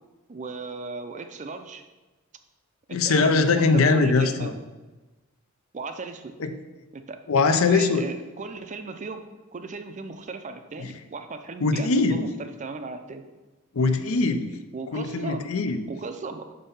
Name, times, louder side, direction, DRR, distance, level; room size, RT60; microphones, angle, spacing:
voice 1, 0.3-1.8 2.9-4.5 5.7-6.4 6.9-7.2 7.5-9.2 9.5-13.2 14.7-15.5 15.9-16.5, right 3 dB, 35° right, 8 dB, 0.5 m, -36 dB
voice 2, 2.9-4.5 6.4-6.5 7.3-8.1 11.6-12.3 13.7-14.5 14.9-15.9, left 4 dB, 70° left, 8 dB, 0.6 m, -21 dB
5.4 x 5.3 x 5.6 m, 1.2 s
head